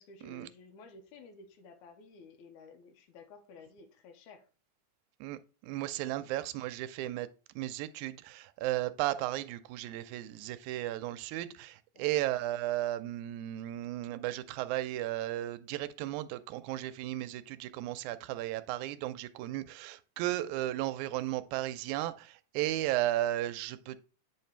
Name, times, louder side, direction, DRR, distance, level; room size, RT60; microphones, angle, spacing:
voice 1, 0.0-4.5 6.2-6.3 11.9-12.2, left 4 dB, 90° left, 2.3 m, -54 dB
voice 2, 5.2-7.3 7.6-24.0, right 15 dB, 85° right, 1.9 m, -35 dB
8.8 x 3.3 x 4.4 m
omnidirectional pair, 3.4 m